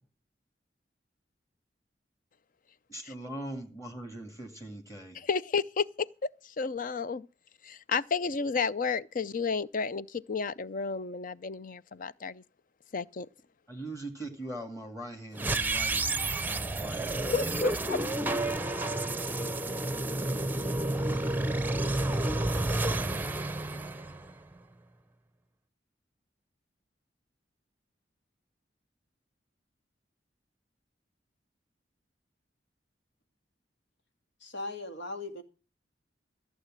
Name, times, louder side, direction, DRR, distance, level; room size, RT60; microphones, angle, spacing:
voice 1, 2.9-5.2 13.7-17.7, right 1 dB, 15° left, 2.2 m, -41 dB
voice 2, 5.3-6.1 6.6-7.3 7.6-12.4 12.9-13.3 17.3-18.0, left 5 dB, 50° left, 0.6 m, -31 dB
sound 1, 15.3-24.6, right 2 dB, 10° right, 0.7 m, -30 dB
voice 3, 34.4-35.4, left 2 dB, 80° left, 2.2 m, -38 dB
15.0 x 7.5 x 7.4 m
head